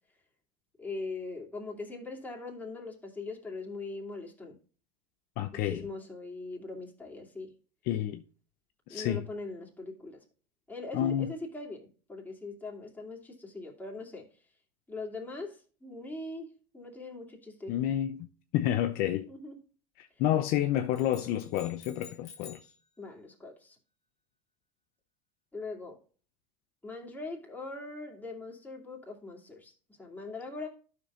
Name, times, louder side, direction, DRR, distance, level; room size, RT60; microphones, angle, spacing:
voice 1, 0.8-4.6 5.5-7.5 8.9-10.2 10.7-14.3 14.9-17.7 19.3-19.6 23.0-23.8 25.5-26.0 26.8-29.7 30.0-30.7, left 3 dB, 10° left, 2.6 m, -41 dB
voice 2, 5.4-5.9 7.9-8.2 8.9-9.2 10.9-11.3 17.7-18.3 18.5-19.3 20.0-22.6, left 12 dB, 50° left, 0.7 m, -29 dB
sound 1, 20.9-22.8, left 6 dB, 35° left, 2.1 m, -51 dB
12.5 x 6.1 x 2.5 m
hypercardioid pair, 90°, 19 cm